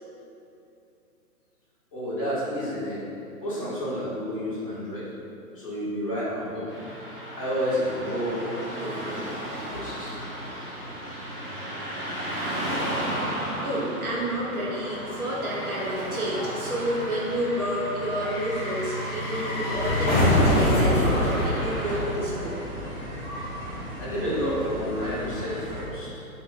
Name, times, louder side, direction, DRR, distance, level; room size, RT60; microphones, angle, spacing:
voice 1, 1.9-3.0 3.4-5.1 5.5-6.7 7.4-8.5 8.8-10.6 24.0-26.2, equal, 25° left, -12 dB, 0.4 m, -30 dB
Car passing by / Traffic noise roadway noise, 6.7-22.0, right 1 dB, 40° right, 1.0 m, -35 dB
sound 1, 12.5-22.8 23.1-23.2, left 1 dB, 45° left, 0.8 m, -27 dB
voice 2, 13.5-22.7, equal, 70° right, -5 dB, 1.0 m, -30 dB
sound 2, 19.8-25.8, equal, 20° right, 0.7 m, -35 dB
3.9 x 2.1 x 2.2 m, 2.7 s
hypercardioid pair, 160°, 45 cm